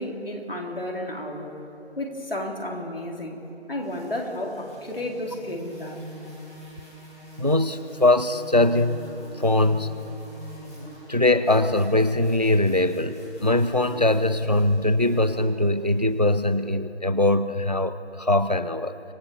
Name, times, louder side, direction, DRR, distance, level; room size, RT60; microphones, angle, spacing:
voice 1, 0.0-1.6 2.0-3.4 3.7-6.0, left 1 dB, 55° left, 0 dB, 3.5 m, -32 dB
sound 1, 3.8-16.5, equal, 15° left, 7.0 m, -45 dB
voice 2, 7.4-9.0 9.4-10.1 11.1-18.9, left 1 dB, 40° right, 13 dB, 0.6 m, -22 dB
25.5 x 17.5 x 6.9 m, 2.9 s
figure-of-eight pair, 180°, 33 cm